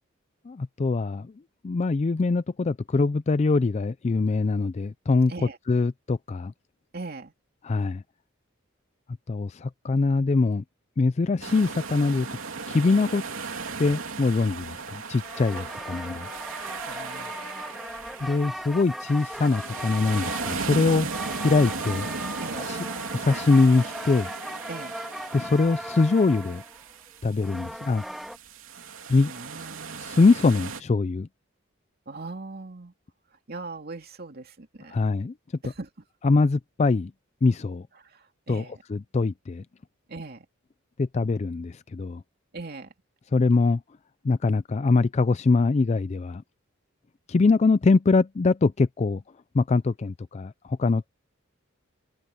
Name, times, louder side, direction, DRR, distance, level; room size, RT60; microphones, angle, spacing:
voice 1, 0.5-1.3 1.6-5.3 5.7-6.5 7.6-8.0 9.3-10.6 11.0-12.3 12.7-13.2 13.8-16.3 18.2-21.1 21.4-22.1 22.5-22.8 23.1-24.3 25.3-26.6 27.2-28.0 29.1-29.3 30.0-31.3 34.9-35.3 36.2-37.1 37.4-37.9 38.5-38.6 38.9-39.6 41.0-42.2 43.3-43.8 44.2-46.4 47.3-49.2 49.5-51.2, left 3 dB, 35° left, 0.4 m, -23 dB
voice 2, 6.9-7.3 13.7-13.8 15.5-15.7 16.8-17.6 22.4-22.7 24.7-24.9 29.3-30.4 32.1-32.9 33.5-35.0 35.6-35.9 38.0-38.8 40.1-40.4 42.5-42.9, right 3 dB, 50° right, 2.6 m, -40 dB
sound 1, 11.4-30.8, right 4 dB, 90° right, 3.1 m, -37 dB
sound 2, 15.2-28.4, equal, ahead, 3.1 m, -38 dB
head